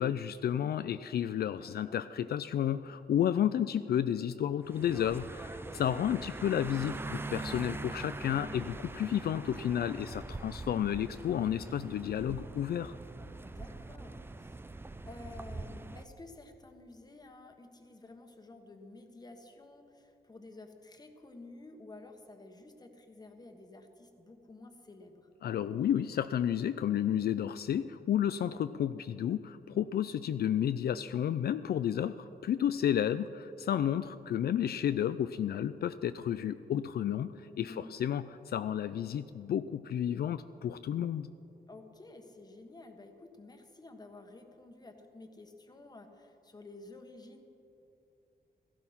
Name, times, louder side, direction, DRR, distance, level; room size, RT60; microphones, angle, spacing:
voice 1, 0.0-12.9 25.4-41.3, left 10 dB, 75° left, 12 dB, 0.4 m, -31 dB
voice 2, 1.6-2.0 5.7-6.3 8.3-8.5 13.4-25.3 28.4-28.6 33.6-33.9 37.7-37.9 41.7-47.4, left 2 dB, 25° left, 5 dB, 1.3 m, -52 dB
sound 1, 4.7-16.1, right 2 dB, 15° right, 0.4 m, -43 dB
16.5 x 14.5 x 5.7 m, 2.8 s
wide cardioid pair, 155°, 16 cm